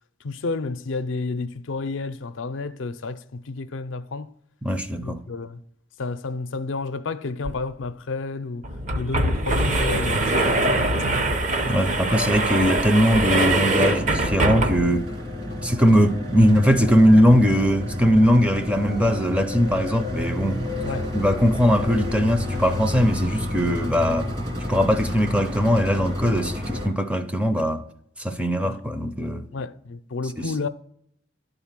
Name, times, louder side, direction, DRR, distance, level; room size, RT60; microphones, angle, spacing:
voice 1, 0.2-4.3 5.0-5.6 6.0-8.7 9.0-11.3 20.8-21.1 28.6-28.8 29.5-30.7, left 3 dB, 80° left, 0.5 m, -31 dB
voice 2, 4.6-5.2 11.7-15.1 15.6-20.8 21.1-24.3 24.7-27.8 28.2-29.5 30.4-30.5, equal, 5° right, 0.5 m, -20 dB
sound 1, 7.4-7.5 7.8-7.9 8.6-15.1, right 2 dB, 40° right, 0.7 m, -23 dB
sound 2, 13.5-26.9, left 1 dB, 55° right, 2.5 m, -30 dB
12.0 x 4.0 x 7.3 m
head